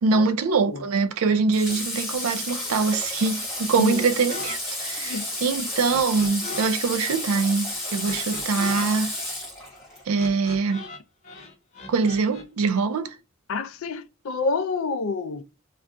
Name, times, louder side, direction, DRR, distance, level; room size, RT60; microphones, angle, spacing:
voice 1, 0.0-9.1 10.1-10.9 11.9-13.2, right 4 dB, 75° right, 0.4 m, -23 dB
Water / Water tap faucet, 1.5-10.0, left 1 dB, ahead, 1.1 m, -32 dB
sound 1, 4.3-4.6 4.8-6.7 7.0-11.0 11.2-12.4, left 3 dB, 35° left, 0.7 m, -39 dB
voice 2, 13.5-15.4, left 4 dB, 65° left, 0.4 m, -27 dB
2.4 x 2.2 x 3.6 m
head